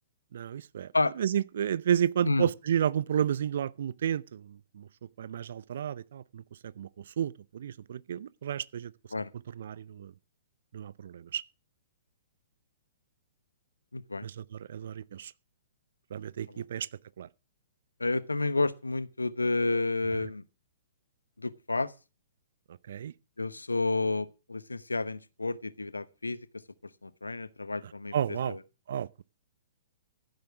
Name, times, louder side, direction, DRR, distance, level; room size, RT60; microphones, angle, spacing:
voice 1, 0.3-4.9 5.2-8.9 9.5-10.1 10.7-11.4 14.2-15.3 16.1-16.9 17.2-17.3 22.7-23.1 27.8-28.6 28.9-29.2, right 9 dB, 60° right, 0.6 m, -32 dB
voice 2, 13.9-14.3 16.5-16.6 18.0-20.4 21.4-21.9 23.4-26.4 27.0-28.1 28.5-28.6, left 3 dB, 85° left, 0.9 m, -30 dB
14.5 x 8.0 x 6.0 m
figure-of-eight pair, 120°, 0 cm